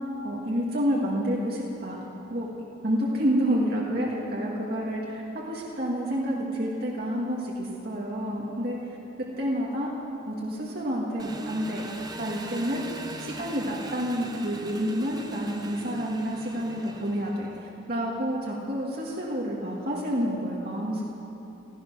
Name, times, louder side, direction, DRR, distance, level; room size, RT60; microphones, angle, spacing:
voice 1, 0.2-2.0 2.3-2.5 2.8-8.8 9.4-9.9 10.3-11.9 12.2-12.8 13.2-21.0, equal, 50° right, -4 dB, 1.8 m, -29 dB
Engine, 11.2-17.7, right 2 dB, 20° right, 0.8 m, -41 dB
16.5 x 14.0 x 5.9 m, 2.9 s
head